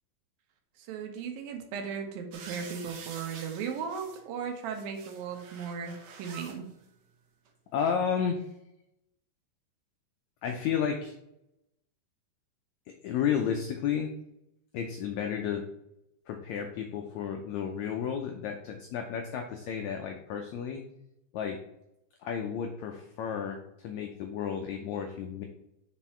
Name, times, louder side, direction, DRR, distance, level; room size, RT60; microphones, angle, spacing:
voice 1, 0.8-6.6, right 6 dB, 90° right, 4 dB, 2.8 m, -37 dB
sound 1, 2.3-4.2 4.6-6.6 7.5-7.6, right 5 dB, 70° right, 1.8 m, -47 dB
voice 2, 7.7-8.5 10.4-11.1 13.0-14.1 14.7-15.6 16.3-20.8 21.3-21.6 22.2-25.4, left 7 dB, 85° left, 4 dB, 1.6 m, -32 dB
6.1 x 4.5 x 4.3 m, 0.84 s
omnidirectional pair, 4.0 m